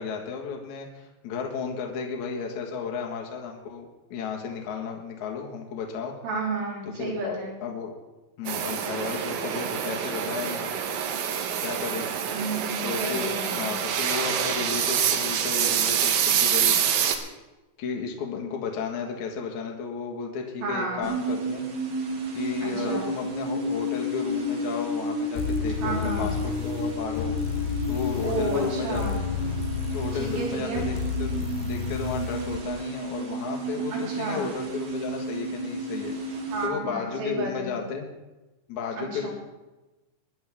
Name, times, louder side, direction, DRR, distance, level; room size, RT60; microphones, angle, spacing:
voice 1, 0.0-6.1 7.0-8.0 8.4-10.7 11.6-12.1 12.8-16.9 17.8-21.6 22.3-27.3 27.9-29.0 29.9-31.3 31.6-38.1 38.7-39.3, left 5 dB, 55° left, 1 dB, 2.6 m, -33 dB
voice 2, 6.2-7.5 12.3-13.8 20.6-21.1 22.6-23.1 25.8-26.3 28.2-29.2 30.1-30.9 33.9-34.5 36.5-37.8 39.0-39.3, right 2 dB, 85° right, -5 dB, 6.5 m, -31 dB
sound 1, 8.5-17.2, right 8 dB, 70° right, 2.4 m, -26 dB
sound 2, 21.0-36.7, right 1 dB, 55° right, 1.5 m, -32 dB
sound 3, 25.4-32.6, left 7 dB, 90° left, 2.9 m, -31 dB
23.0 x 11.0 x 3.6 m, 1.1 s
omnidirectional pair, 4.8 m